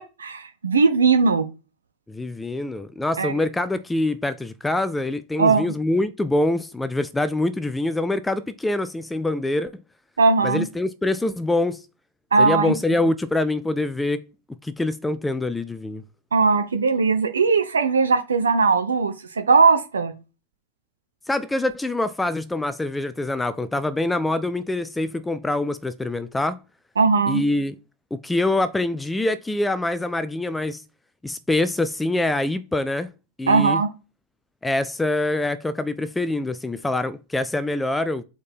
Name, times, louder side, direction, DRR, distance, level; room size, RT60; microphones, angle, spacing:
voice 1, 0.2-1.5 3.2-3.3 5.4-5.6 10.2-10.7 12.3-12.7 16.3-20.1 27.0-27.4 33.5-33.9, right 4 dB, 70° right, 0.6 m, -19 dB
voice 2, 2.1-9.7 10.4-11.8 12.4-14.3 14.6-16.0 21.3-26.6 27.3-27.7 28.1-30.8 31.2-33.1 33.4-33.8 34.6-38.2, left 2 dB, 5° left, 0.4 m, -25 dB
6.9 x 4.3 x 4.4 m
figure-of-eight pair, 90°, 0 cm